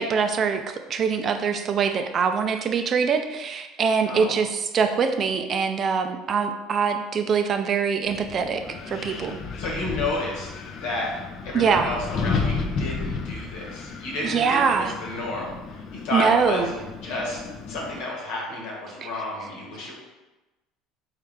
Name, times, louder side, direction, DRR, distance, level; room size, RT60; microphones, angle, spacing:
voice 1, 0.0-9.4 11.5-11.9 14.2-14.9 16.1-16.7 19.0-19.1, right 6 dB, 45° right, 7 dB, 0.4 m, -23 dB
Wind, 8.1-18.0, left 4 dB, 50° left, 0.5 m, -33 dB
voice 2, 9.6-10.5 10.7-11.1 11.4-16.7 17.0-17.4 17.7-19.9, left 2 dB, 75° left, -2 dB, 1.3 m, -31 dB
3.7 x 3.1 x 3.3 m, 1.1 s
supercardioid pair, 90°, 0 cm